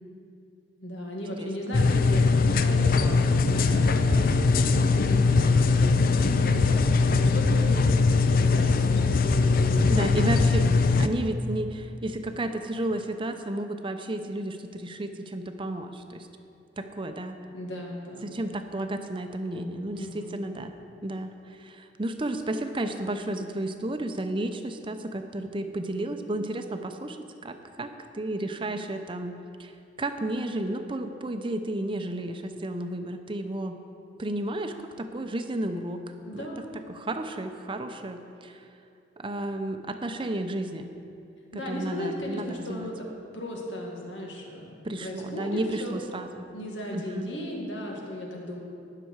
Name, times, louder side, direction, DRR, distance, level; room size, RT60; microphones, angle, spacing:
voice 1, 0.8-10.4 17.5-18.3 19.9-20.4 36.3-36.7 41.5-43.1 43.3-45.9 46.5-48.6, left 1 dB, 85° left, -1 dB, 2.1 m, -36 dB
sound 1, 1.7-11.1, left 4 dB, 50° left, 0.5 m, -21 dB
voice 2, 9.9-10.7 11.0-16.3 16.8-17.4 18.2-20.7 21.0-21.3 21.6-27.2 27.4-27.9 28.1-29.7 30.0-33.8 34.2-36.0 36.3-36.5 36.9-38.6 39.2-40.9 41.5-42.9 44.8-46.5 46.9-47.3, right 1 dB, 30° right, 7 dB, 0.7 m, -32 dB
19.5 x 6.8 x 4.8 m, 2.5 s
head